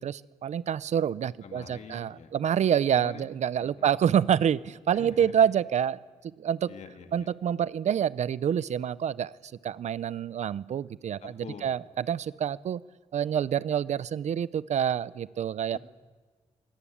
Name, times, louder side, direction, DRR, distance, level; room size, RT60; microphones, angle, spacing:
voice 1, 0.0-6.0 6.4-6.7 7.1-12.8 13.1-15.8, right 9 dB, 65° right, 18 dB, 0.6 m, -27 dB
voice 2, 1.4-2.3 3.0-3.3 3.6-4.0 4.9-5.3 6.7-7.3 11.2-11.7 15.7-15.8, left 6 dB, 65° left, 7 dB, 2.0 m, -45 dB
23.5 x 18.0 x 8.6 m, 1.4 s
wide cardioid pair, 160°, 13 cm